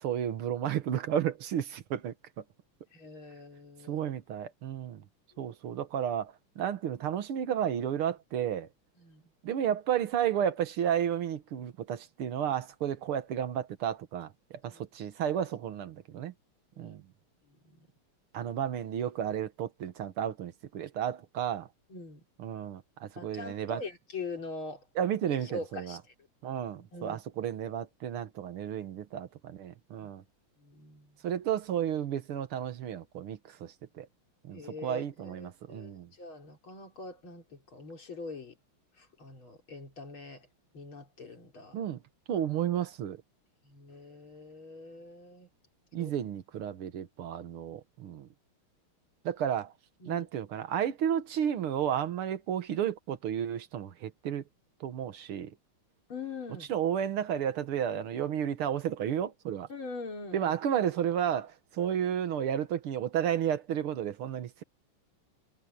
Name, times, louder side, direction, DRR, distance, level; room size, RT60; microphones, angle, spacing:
voice 1, 0.0-2.1 3.9-5.0 5.4-8.7 9.4-16.3 16.8-17.0 18.3-21.7 22.4-23.8 25.0-26.0 26.4-30.2 31.2-34.1 34.5-36.1 41.7-42.0 42.3-43.2 45.9-48.3 49.2-49.7 50.1-54.4 54.8-55.5 56.7-59.7 60.3-64.6, right 9 dB, 85° right, 2.1 m, -32 dB
voice 2, 2.9-4.0 5.3-5.5 9.0-9.2 14.7-14.8 16.7-16.9 17.6-17.8 21.9-22.2 23.2-24.8 25.4-26.0 26.8-27.2 30.0-30.1 30.6-31.2 34.5-38.6 39.0-40.5 40.7-41.8 43.6-45.5 46.0-46.1 50.0-50.3 56.1-56.7 59.7-60.6, left 3 dB, 70° left, 4.9 m, -43 dB
omnidirectional pair, 2.4 m